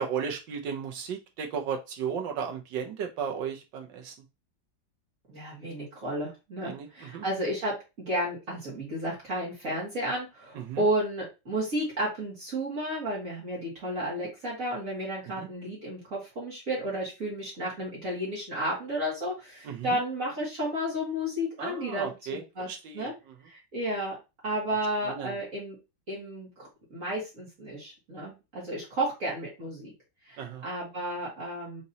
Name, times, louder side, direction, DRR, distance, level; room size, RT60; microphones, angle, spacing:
voice 1, 0.0-4.1 6.6-7.2 10.5-10.8 15.4-15.5 19.6-20.0 21.6-23.1 25.1-25.4 30.4-30.6, right 7 dB, 75° right, 3 dB, 1.6 m, -35 dB
voice 2, 5.3-22.7 22.9-23.1 23.4-24.2 24.4-25.8 26.1-29.9 30.3-31.8, right 1 dB, 45° right, -5 dB, 1.9 m, -32 dB
5.2 x 3.0 x 2.8 m, 0.26 s
omnidirectional pair, 2.1 m